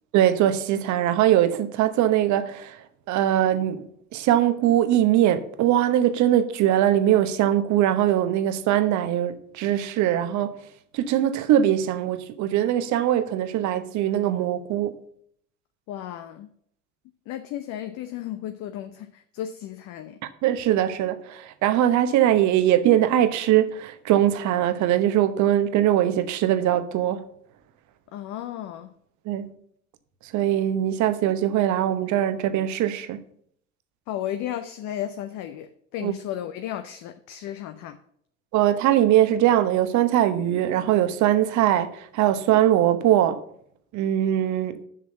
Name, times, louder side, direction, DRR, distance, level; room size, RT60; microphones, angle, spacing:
voice 1, 0.1-2.8 3.1-3.8 4.1-10.6 10.9-15.0 20.4-27.3 29.3-29.5 30.3-33.2 36.0-36.1 38.5-43.4 43.9-44.8, right 12 dB, 50° right, 1.0 m, -21 dB
voice 2, 15.9-16.5 17.3-20.2 28.1-28.9 34.1-38.0, left 11 dB, 50° left, 0.8 m, -34 dB
7.4 x 6.2 x 6.9 m
figure-of-eight pair, 65°, 37 cm